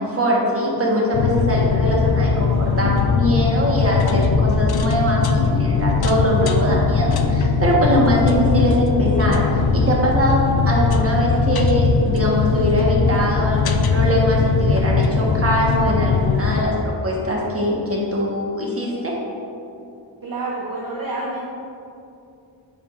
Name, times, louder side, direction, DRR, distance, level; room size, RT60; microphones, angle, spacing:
voice 1, 0.0-9.4 9.7-19.1, equal, 30° right, -3 dB, 1.4 m, -22 dB
sound 1, 1.1-16.6, left 5 dB, 60° left, 0.5 m, -19 dB
voice 2, 20.2-21.5, right 2 dB, 50° right, -4 dB, 0.8 m, -28 dB
8.7 x 4.9 x 2.5 m, 2.6 s
cardioid pair, 65°, 45 cm